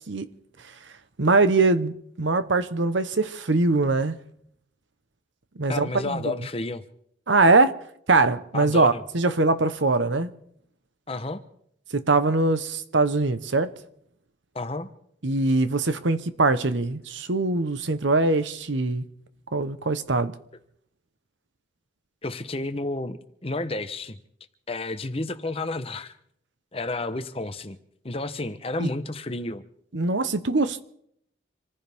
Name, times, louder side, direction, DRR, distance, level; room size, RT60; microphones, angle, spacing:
voice 1, 1.2-4.2 5.6-6.4 7.3-7.8 8.1-10.3 11.9-13.8 15.2-19.1 19.5-20.3 28.8-28.9 29.9-30.8, right 3 dB, 70° right, 1.0 m, -22 dB
voice 2, 5.7-6.8 8.5-9.0 11.1-11.4 14.5-14.9 22.2-24.2 24.7-26.1 26.7-27.8 28.0-29.7, left 2 dB, 30° left, 0.9 m, -31 dB
26.5 x 15.0 x 3.5 m
head